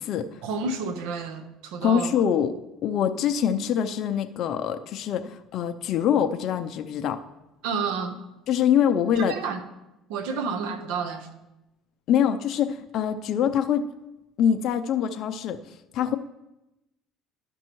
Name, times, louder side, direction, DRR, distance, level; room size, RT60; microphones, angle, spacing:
voice 1, 0.4-2.2 7.6-8.2 9.2-9.6 10.1-11.3, right 5 dB, 80° right, 9 dB, 0.7 m, -30 dB
voice 2, 1.8-7.2 8.5-9.3 12.1-13.9 14.4-16.2, left 8 dB, 60° left, 7 dB, 0.5 m, -24 dB
12.0 x 5.3 x 3.1 m, 0.94 s
supercardioid pair, 80°, 0 cm